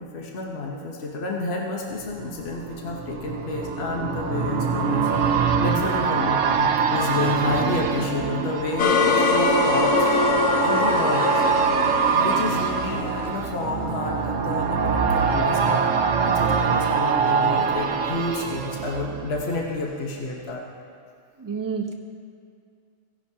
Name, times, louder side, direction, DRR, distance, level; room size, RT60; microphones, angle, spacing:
voice 1, 0.0-5.1 5.6-11.4 12.1-20.6, left 3 dB, 55° left, -1 dB, 1.2 m, -30 dB
sound 1, 2.0-19.8 20.2-20.3, right 6 dB, 75° right, 1.0 m, -24 dB
voice 2, 5.7-6.1 21.4-21.9, right 5 dB, 20° right, 1 dB, 0.7 m, -30 dB
sound 2, 8.8-13.8, left 4 dB, 85° left, 1.2 m, -23 dB
17.0 x 10.0 x 2.8 m, 2.3 s
omnidirectional pair, 1.4 m